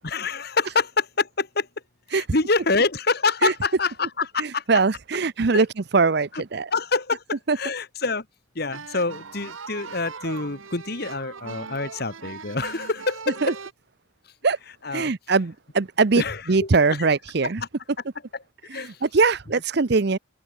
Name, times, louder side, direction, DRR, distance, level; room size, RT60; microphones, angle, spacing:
voice 1, 0.0-1.7 2.1-4.6 5.5-5.6 6.3-6.4 6.7-8.3 8.6-13.6 14.8-15.1 16.2-16.7 17.6-17.7 18.6-19.0, left 3 dB, 50° left, 1.7 m, -26 dB
voice 2, 4.4-5.7 5.9-6.7 7.5-7.6 13.4-13.5 14.4-14.6 14.9-16.2 16.5-17.6 18.7-20.2, right 4 dB, 55° right, 0.7 m, -21 dB
sound 1, 8.7-13.7, right 5 dB, 85° right, 1.3 m, -39 dB
head